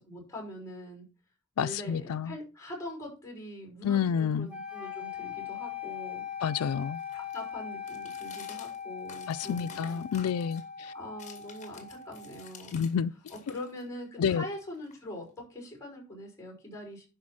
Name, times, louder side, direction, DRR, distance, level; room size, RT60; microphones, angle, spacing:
voice 1, 0.1-1.0 1.6-6.2 7.1-10.0 10.9-12.9 13.3-17.1, left 1 dB, 15° left, 5.7 m, -43 dB
voice 2, 1.6-2.4 3.8-4.5 6.4-7.0 9.3-10.9 12.7-13.1 14.2-14.4, left 7 dB, 85° left, 0.4 m, -29 dB
sound 1, 4.5-12.6, left 8 dB, 5° right, 2.1 m, -40 dB
sound 2, 5.6-13.0 13.2-15.4, left 6 dB, 35° left, 1.9 m, -53 dB
11.5 x 5.0 x 6.1 m
head